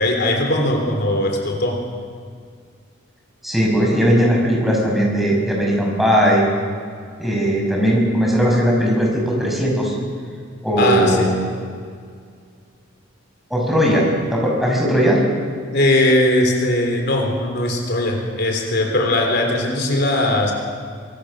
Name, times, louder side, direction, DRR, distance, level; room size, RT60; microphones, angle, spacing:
voice 1, 0.0-1.8 10.8-11.3 15.7-20.5, left 1 dB, 55° left, 2 dB, 3.4 m, -19 dB
voice 2, 3.4-6.4 7.2-9.9 10.6-11.4 13.5-15.2, equal, ahead, -2 dB, 5.8 m, -18 dB
24.5 x 22.0 x 6.4 m, 2.1 s
head